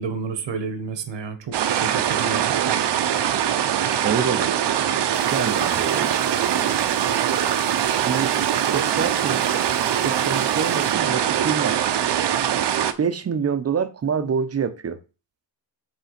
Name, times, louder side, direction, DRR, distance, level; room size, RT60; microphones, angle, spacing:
voice 1, 0.0-2.8, right 5 dB, 90° right, 1.2 m, -31 dB
sound 1, 1.5-12.9, right 10 dB, 70° right, 0.7 m, -22 dB
voice 2, 4.0-4.6 5.3-6.2 7.9-8.3 8.7-9.4 10.0-11.8 13.0-15.0, right 6 dB, 35° right, 0.6 m, -26 dB
sound 2, 5.1-10.9, left 5 dB, 80° left, 1.8 m, -44 dB
5.6 x 3.4 x 5.7 m
wide cardioid pair, 130°, 43 cm